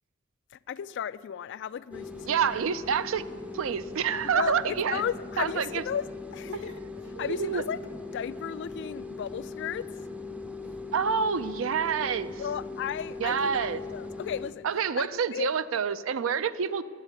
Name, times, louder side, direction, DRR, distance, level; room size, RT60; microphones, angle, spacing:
voice 1, 0.7-2.3 4.3-6.0 6.3-7.8 8.1-9.9 12.4-14.7 15.0-15.5, left 8 dB, 60° left, 16 dB, 0.3 m, -34 dB
sound 1, 1.9-14.6, left 3 dB, 5° right, 0.5 m, -40 dB
voice 2, 2.2-3.2 3.5-5.0 5.4-5.8 6.5-6.9 7.1-7.6 10.9-12.4 13.2-13.8 14.6-16.8, right 6 dB, 70° right, 14 dB, 0.4 m, -28 dB
9.7 x 8.2 x 9.1 m, 2.2 s
head